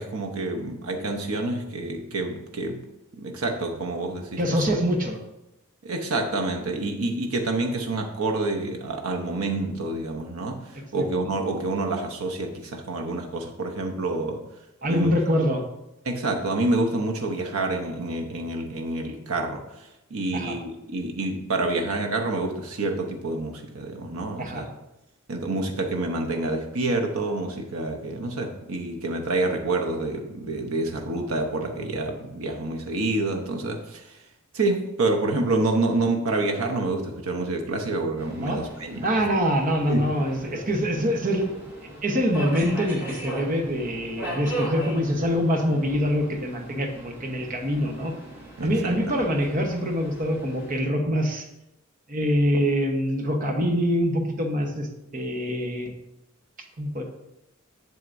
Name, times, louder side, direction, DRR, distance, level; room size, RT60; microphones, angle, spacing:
voice 1, 0.0-2.8 3.1-4.6 5.8-14.4 14.9-15.1 16.0-19.6 20.1-24.6 25.3-34.2 34.5-39.1 39.9-40.1 48.6-49.2, right 2 dB, 85° right, 2 dB, 0.8 m, -28 dB
voice 2, 4.4-5.2 10.9-11.1 14.8-15.6 20.3-20.5 24.4-24.7 38.4-38.6 39.0-41.5 42.0-48.1 48.6-51.5 52.1-55.9 56.8-57.0, equal, 40° right, 3 dB, 1.0 m, -24 dB
Subway metro underground, 38.2-50.8, right 1 dB, 10° right, 2.1 m, -39 dB
7.7 x 7.0 x 2.6 m, 0.91 s
head